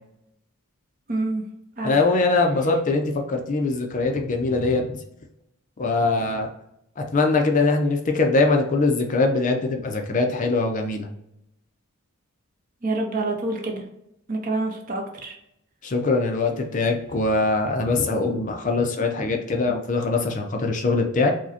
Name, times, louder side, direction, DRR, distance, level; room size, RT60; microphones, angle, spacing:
voice 1, 1.1-1.4 1.8-2.0 12.8-13.8 14.3-15.4, right 2 dB, 40° right, 3 dB, 0.6 m, -27 dB
voice 2, 1.8-5.0 5.8-6.5 7.0-11.1 15.8-21.3, left 3 dB, 35° left, 3 dB, 0.4 m, -22 dB
4.8 x 2.1 x 2.7 m, 0.81 s
head